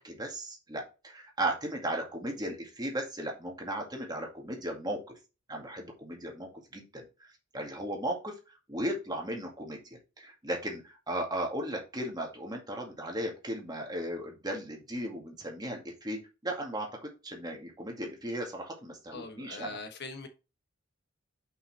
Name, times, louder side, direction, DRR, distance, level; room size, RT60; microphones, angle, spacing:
voice 1, 0.0-5.0 5.5-16.9 17.2-19.8, right 1 dB, 20° right, 2.1 m, -36 dB
voice 2, 19.1-20.3, left 3 dB, 50° left, 1.2 m, -42 dB
5.7 x 5.6 x 4.2 m
head